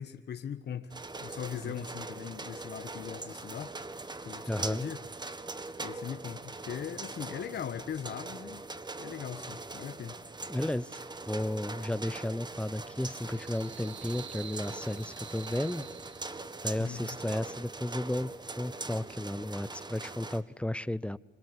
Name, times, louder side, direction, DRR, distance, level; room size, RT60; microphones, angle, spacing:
voice 1, 0.0-3.7 4.2-5.0 5.8-8.6 9.0-10.1 16.8-17.2, left 8 dB, 55° left, 1.4 m, -40 dB
sound 1, 0.9-20.4, right 3 dB, 20° right, 1.8 m, -42 dB
voice 2, 4.5-4.8 10.5-11.0 11.3-15.8 16.6-21.2, left 1 dB, 5° left, 0.9 m, -33 dB
sound 2, 11.0-16.8, right 9 dB, 65° right, 2.1 m, -51 dB
26.0 x 26.0 x 8.2 m
cardioid pair, 90°, 20 cm